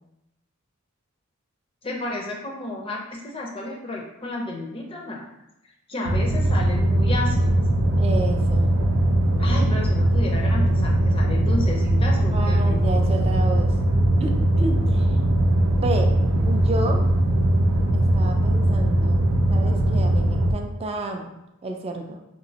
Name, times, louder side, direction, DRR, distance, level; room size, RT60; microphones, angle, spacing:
voice 1, 1.8-5.3 5.9-7.5 9.4-13.1, left 2 dB, 25° left, -1 dB, 0.5 m, -32 dB
sound 1, 6.1-20.5, right 1 dB, 85° right, 0.5 m, -20 dB
voice 2, 8.0-8.7 12.3-13.7 14.2-15.2 15.8-16.2 16.4-17.0 17.9-19.2 19.5-21.3 21.6-22.2, right 2 dB, 30° right, 4 dB, 0.3 m, -30 dB
3.0 x 2.8 x 2.7 m, 0.88 s
head